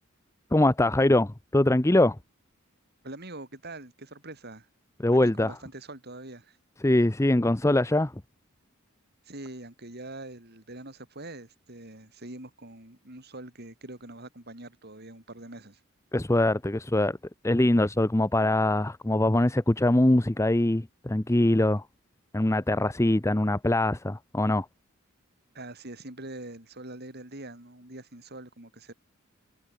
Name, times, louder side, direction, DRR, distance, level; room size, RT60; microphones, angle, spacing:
voice 1, 0.5-2.2 5.0-5.5 6.8-8.1 16.1-17.2 17.4-21.8 22.3-24.7, left 1 dB, 15° left, 0.7 m, -23 dB
voice 2, 3.0-4.7 5.1-6.6 9.2-15.8 25.5-28.9, right 2 dB, 50° right, 5.0 m, -43 dB
head